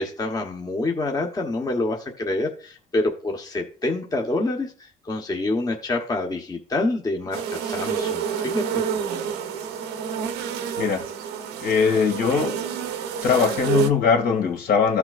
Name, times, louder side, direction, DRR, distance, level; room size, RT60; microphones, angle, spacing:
voice 1, 0.0-8.8, left 2 dB, 20° left, 1.1 m, -27 dB
sound 1, 7.3-13.9, right 7 dB, 85° right, 1.0 m, -28 dB
voice 2, 11.6-12.6 13.2-15.0, left 6 dB, 65° left, 2.2 m, -21 dB
14.5 x 5.8 x 2.5 m
cardioid pair, 110°, 17 cm